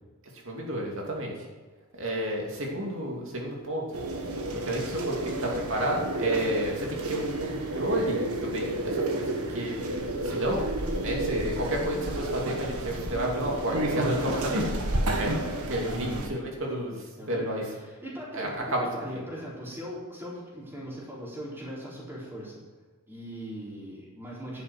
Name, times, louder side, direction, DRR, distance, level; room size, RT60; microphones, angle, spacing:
voice 1, 0.4-1.3 2.0-3.8 4.6-9.7 10.2-10.6 11.0-14.6 15.1-15.3 15.7-17.6 18.3-18.9 19.1-19.2, right 1 dB, 60° right, -1 dB, 2.7 m, -31 dB
sound 1, 3.9-16.3, right 1 dB, 85° right, 1.5 m, -31 dB
voice 2, 15.7-16.3 17.2-22.6 23.1-24.6, equal, 10° right, -7 dB, 4.2 m, -39 dB
11.0 x 7.1 x 6.4 m, 1.4 s
head